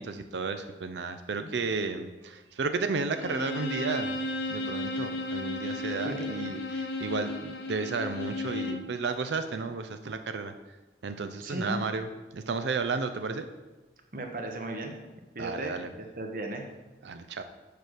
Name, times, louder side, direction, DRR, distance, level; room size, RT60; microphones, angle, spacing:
voice 1, 0.0-4.2 4.5-10.5 11.0-12.1 12.3-13.5 15.4-15.9 17.0-17.4, right 4 dB, 75° right, 9 dB, 0.5 m, -33 dB
Bowed string instrument, 3.1-8.9, left 2 dB, 80° left, 0.8 m, -34 dB
voice 2, 11.4-11.8 14.1-14.9 15.3-16.6, right 1 dB, 50° right, 3 dB, 1.1 m, -36 dB
6.8 x 5.1 x 6.3 m, 1.1 s
head